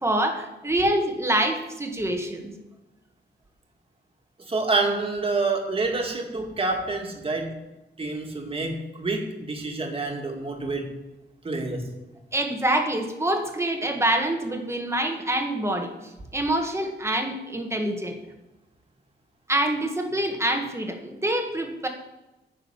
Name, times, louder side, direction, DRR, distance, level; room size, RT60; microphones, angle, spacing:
voice 1, 0.0-2.6 12.3-15.9 16.3-18.2 19.5-21.9, right 1 dB, 15° right, 4 dB, 1.7 m, -26 dB
voice 2, 4.5-7.5 8.0-11.0 11.4-11.9, right 3 dB, 30° right, 2 dB, 2.2 m, -27 dB
10.0 x 6.7 x 8.9 m, 1.0 s
wide cardioid pair, 135°, 19 cm